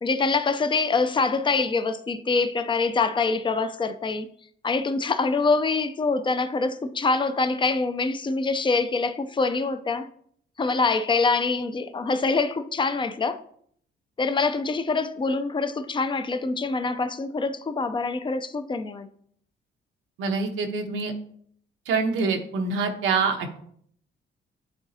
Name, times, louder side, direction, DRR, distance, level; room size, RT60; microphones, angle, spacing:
voice 1, 0.0-4.3 4.6-10.1 10.6-13.4 14.2-19.1, left 4 dB, 25° left, 0.5 m, -25 dB
voice 2, 20.2-21.1 21.9-23.7, right 4 dB, 85° right, 1.0 m, -25 dB
10.5 x 3.9 x 2.8 m
cardioid pair, 90°, 20 cm